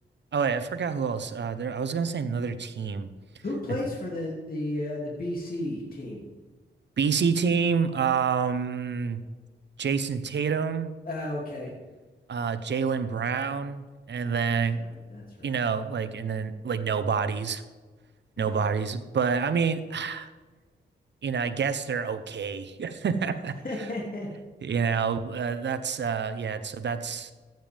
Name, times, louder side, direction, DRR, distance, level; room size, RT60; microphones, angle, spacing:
voice 1, 0.3-3.1 7.0-9.2 9.8-10.9 12.3-14.8 15.4-17.6 18.4-20.3 21.2-23.9 24.6-27.3, right 6 dB, 65° right, 10 dB, 0.9 m, -28 dB
voice 2, 3.4-6.2 11.1-11.7 14.8-15.6 18.4-18.6 23.6-24.3, left 1 dB, 50° left, -3 dB, 2.7 m, -33 dB
14.5 x 9.2 x 3.5 m, 1.3 s
cardioid pair, 65°, 19 cm